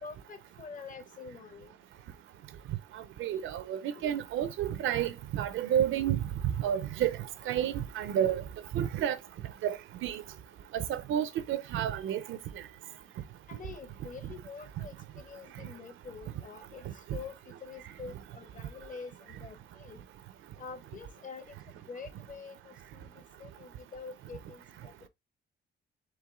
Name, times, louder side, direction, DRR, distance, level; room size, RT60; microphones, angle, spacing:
voice 1, 0.0-1.8 3.9-4.1 13.5-20.0 20.6-25.1, left 5 dB, 40° left, 1.1 m, -46 dB
voice 2, 3.2-7.2 7.5-8.4 8.7-9.2 9.6-10.2 10.7-12.4 14.2-14.3 16.9-17.0, right 10 dB, 80° right, 0.7 m, -30 dB
4.6 x 3.1 x 3.6 m
cardioid pair, 90°, 20 cm